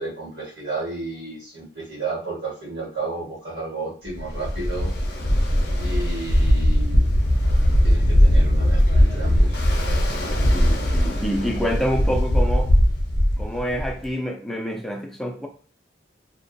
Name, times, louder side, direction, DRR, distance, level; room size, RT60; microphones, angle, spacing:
voice 1, 0.0-4.9 5.8-7.2 7.8-9.6, right 3 dB, 60° right, 1.2 m, -32 dB
Ocean, 4.2-14.0, equal, 55° left, 0.5 m, -19 dB
voice 2, 10.5-12.7 13.4-15.5, equal, ahead, 0.3 m, -27 dB
2.3 x 2.2 x 2.5 m
head